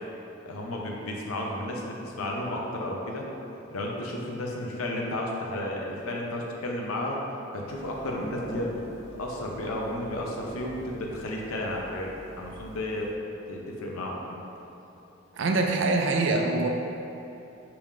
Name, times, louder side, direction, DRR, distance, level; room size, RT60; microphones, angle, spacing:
voice 1, 0.5-3.3 3.7-7.2 7.5-8.8 9.2-13.1 13.5-14.4, left 1 dB, 85° left, -1 dB, 0.6 m, -33 dB
sound 1, 7.7-13.1, equal, 25° left, 1.1 m, -44 dB
voice 2, 15.4-16.7, right 3 dB, 60° right, 2 dB, 0.4 m, -24 dB
3.6 x 2.9 x 4.8 m, 2.9 s
head